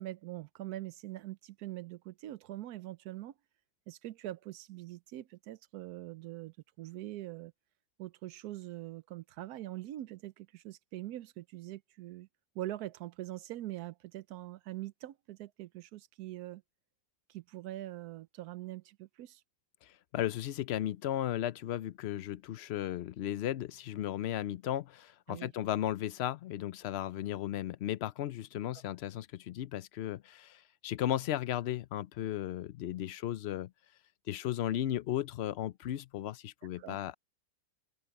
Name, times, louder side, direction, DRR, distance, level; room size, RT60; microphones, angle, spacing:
voice 1, 0.0-3.3 3.9-7.5 8.0-12.3 12.5-16.6 17.3-19.4 25.3-25.5 36.8-37.0, right 15 dB, 90° right, 1.2 m, -43 dB
voice 2, 19.8-33.7 34.3-37.1, left 12 dB, 65° left, 0.6 m, -35 dB
open air
omnidirectional pair, 1.6 m